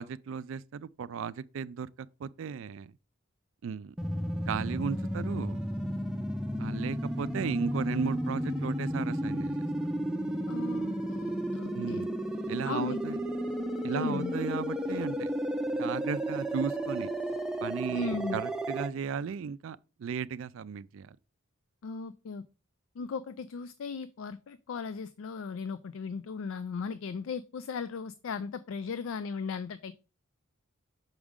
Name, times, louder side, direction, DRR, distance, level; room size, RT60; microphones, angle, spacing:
voice 1, 0.0-2.9 3.6-3.9 4.5-5.6 6.6-9.7 11.7-12.1 12.5-13.2 13.8-15.3 15.8-17.1 17.6-21.2, right 6 dB, 65° right, 0.3 m, -36 dB
sound 1, 4.0-18.9, equal, 5° right, 0.5 m, -33 dB
voice 2, 10.5-12.1 12.7-13.0 13.9-14.3 17.9-18.4 21.8-22.4 23.0-29.9, left 5 dB, 65° left, 0.3 m, -37 dB
6.3 x 4.9 x 3.5 m
head